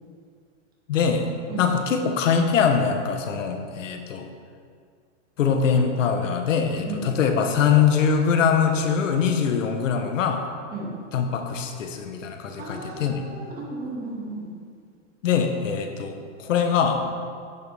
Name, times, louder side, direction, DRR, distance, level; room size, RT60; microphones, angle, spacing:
voice 1, 0.9-1.3 1.6-4.3 5.4-10.5 11.1-13.3 15.2-16.1 16.4-17.1, left 6 dB, 85° left, 5 dB, 1.3 m, -22 dB
voice 2, 12.6-14.5, right 2 dB, 25° right, -3 dB, 2.1 m, -34 dB
10.5 x 8.5 x 3.5 m, 2.1 s
supercardioid pair, 150°, 37 cm